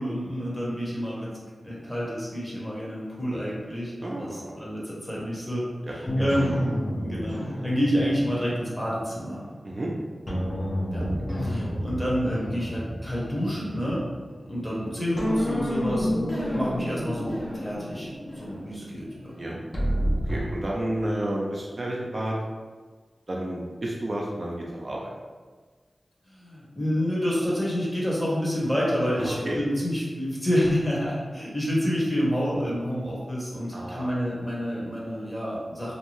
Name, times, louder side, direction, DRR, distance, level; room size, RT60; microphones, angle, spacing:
voice 1, 0.0-1.3 1.6-5.6 5.9-6.6 7.0-9.4 10.9-11.0 11.4-14.1 14.5-19.3 26.3-36.0, equal, 10° left, -6 dB, 1.0 m, -28 dB
voice 2, 4.0-4.6 5.8-6.3 9.6-9.9 19.4-19.6 20.2-22.3 23.3-25.1 29.2-29.6 33.7-34.1, right 1 dB, 45° right, -3 dB, 0.4 m, -31 dB
sound 1, 6.1-9.8 10.3-14.8 15.2-20.4, equal, 30° left, 0.7 m, -30 dB
2.6 x 2.2 x 3.0 m, 1.4 s
wide cardioid pair, 60°, 0 cm